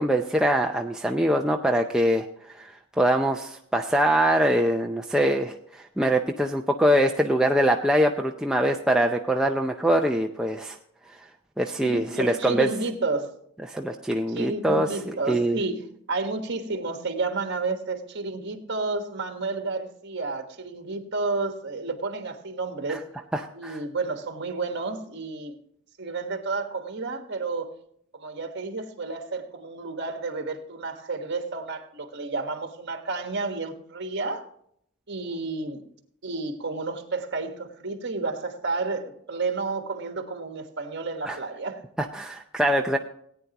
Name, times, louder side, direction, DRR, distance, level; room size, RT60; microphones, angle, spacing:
voice 1, 0.0-10.8 11.6-12.7 13.7-15.6 22.9-23.0 23.3-23.8 41.3-41.4 42.0-43.0, right 1 dB, 5° right, 0.5 m, -23 dB
voice 2, 11.8-13.3 14.3-23.0 23.5-25.6 26.0-27.7 28.1-34.5 35.1-35.8 36.2-41.8, right 3 dB, 55° right, 1.4 m, -31 dB
17.5 x 9.3 x 2.9 m
head